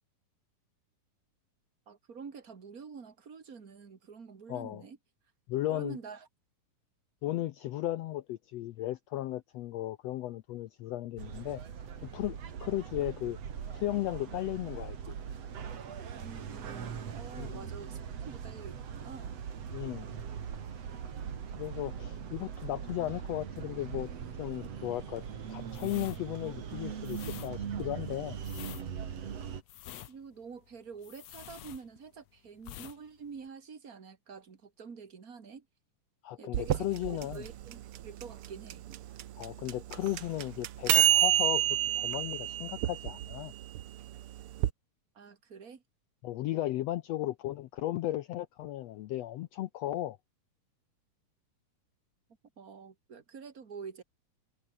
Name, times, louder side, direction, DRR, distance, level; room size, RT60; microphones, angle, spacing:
voice 1, 1.9-5.0 5.7-6.3 16.2-19.4 30.1-35.7 36.4-38.8 45.1-45.8 52.6-54.0, right 5 dB, 30° right, 2.1 m, -47 dB
voice 2, 4.5-4.8 5.5-6.0 7.2-11.6 12.0-13.4 13.7-15.1 17.3-17.7 19.7-20.1 21.6-24.1 24.4-28.4 36.2-37.4 39.4-43.5 46.2-50.2, left 14 dB, 80° left, 1.5 m, -35 dB
sound 1, 11.2-29.6, right 7 dB, 50° right, 3.2 m, -41 dB
sound 2, 25.7-32.3 32.6-33.0 33.2-33.5, left 12 dB, 65° left, 2.0 m, -47 dB
sound 3, 36.5-44.7, right 13 dB, 75° right, 1.3 m, -29 dB
omnidirectional pair, 3.8 m